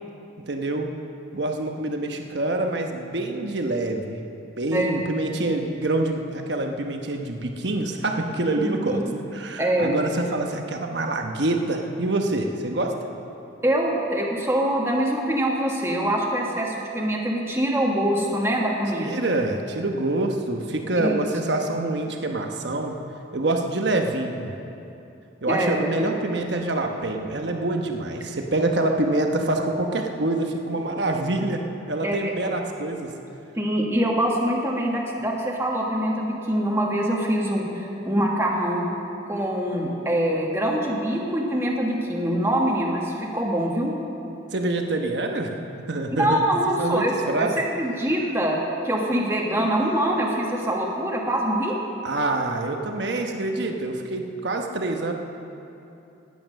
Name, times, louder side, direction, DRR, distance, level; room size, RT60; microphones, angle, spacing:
voice 1, 0.5-0.9 1.3-4.3 4.6-9.0 9.3-13.0 18.9-23.0 23.3-24.5 25.4-33.1 44.5-45.6 45.9-46.4 46.8-47.5 52.0-55.1, right 2 dB, 65° right, 3 dB, 1.1 m, -26 dB
voice 2, 8.6-9.0 9.6-9.9 13.6-19.1 20.9-21.2 25.5-25.7 32.0-32.3 33.5-38.9 39.3-43.9 46.2-47.1 47.4-47.5 47.7-48.6 48.8-51.8, right 1 dB, 15° right, -2 dB, 1.5 m, -24 dB
18.5 x 8.6 x 6.5 m, 2.8 s
head